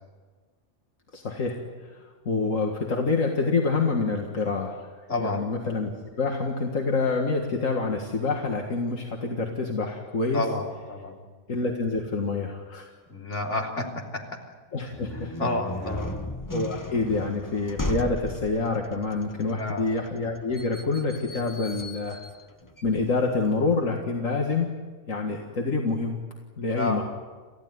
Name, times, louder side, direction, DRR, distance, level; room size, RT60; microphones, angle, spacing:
voice 1, 1.1-1.6 1.8-4.9 5.2-5.9 6.2-10.5 11.5-12.9 14.7-15.5 16.0-16.1 16.5-22.2 22.8-24.7 25.1-26.2 26.6-27.0, left 3 dB, 85° left, 1 dB, 2.3 m, -27 dB
voice 2, 5.1-5.5 10.3-11.2 13.1-13.8 14.1-14.2 15.4-16.2 19.5-19.8 26.7-27.0, left 2 dB, 65° left, 0 dB, 3.8 m, -29 dB
sound 1, 14.9-23.6, left 2 dB, 15° left, 1.0 m, -37 dB
30.0 x 15.0 x 9.6 m, 1.4 s
omnidirectional pair, 1.3 m